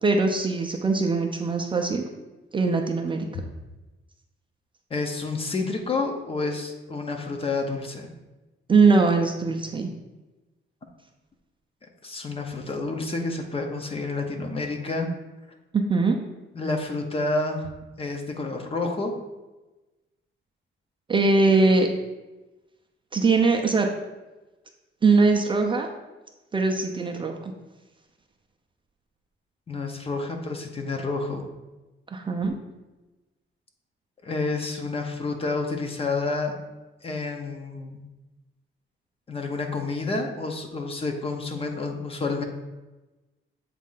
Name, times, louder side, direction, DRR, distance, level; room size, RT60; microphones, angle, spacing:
voice 1, 0.0-2.0 2.5-3.3 8.7-9.9 15.7-16.2 21.1-21.9 23.1-23.9 25.0-25.9 26.5-27.5 32.1-32.5, right 3 dB, 25° right, 2 dB, 0.4 m, -21 dB
voice 2, 4.9-8.1 12.0-15.1 16.5-17.7 18.0-19.1 29.7-31.4 34.2-36.6 37.0-38.0 39.3-42.4, left 3 dB, 30° left, 3 dB, 0.6 m, -29 dB
7.4 x 2.5 x 5.4 m, 1.1 s
wide cardioid pair, 170°, 21 cm